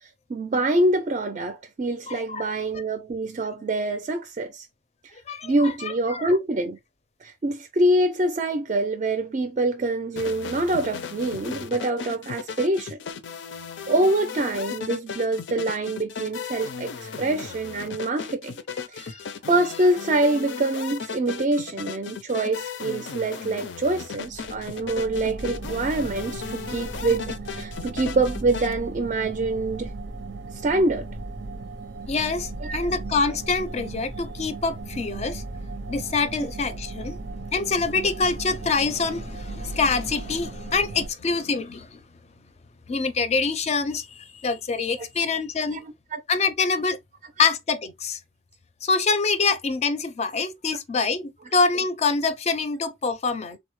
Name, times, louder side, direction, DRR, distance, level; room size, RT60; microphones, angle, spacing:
voice 1, 0.0-4.7 5.4-6.8 7.2-13.0 13.9-18.5 18.9-19.2 19.5-29.9 30.5-31.1 32.6-32.9 45.7-46.2, right 2 dB, 40° right, 0.4 m, -25 dB
voice 2, 2.1-2.5 5.3-6.3 19.0-19.3 32.1-35.4 35.9-37.2 37.5-42.0 42.9-45.8 46.3-47.0 47.4-48.2 48.8-53.6, left 4 dB, 40° left, 0.4 m, -25 dB
sound 1, 10.2-28.7, left 6 dB, 90° left, 0.5 m, -36 dB
sound 2, 24.2-41.1, right 3 dB, 85° right, 0.6 m, -36 dB
3.5 x 2.0 x 3.0 m
head